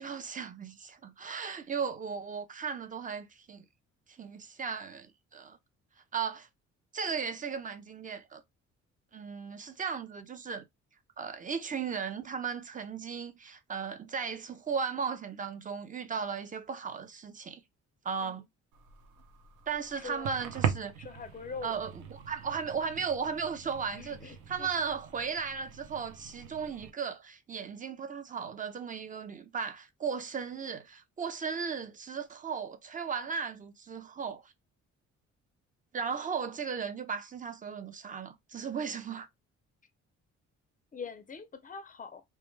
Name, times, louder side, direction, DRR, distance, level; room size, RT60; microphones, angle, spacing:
voice 1, 0.0-3.6 4.2-5.6 6.1-6.5 6.9-8.4 9.1-10.6 11.2-17.6 18.0-18.4 19.7-20.9 21.6-34.5 35.9-39.3, right 6 dB, 25° right, 0.5 m, -36 dB
sound 1, 18.7-26.9, right 8 dB, 85° right, 0.6 m, -40 dB
voice 2, 20.0-20.3 21.0-21.8 23.9-24.7 40.9-42.2, left 5 dB, 30° left, 0.4 m, -43 dB
2.1 x 2.1 x 3.0 m
cardioid pair, 90°, 30 cm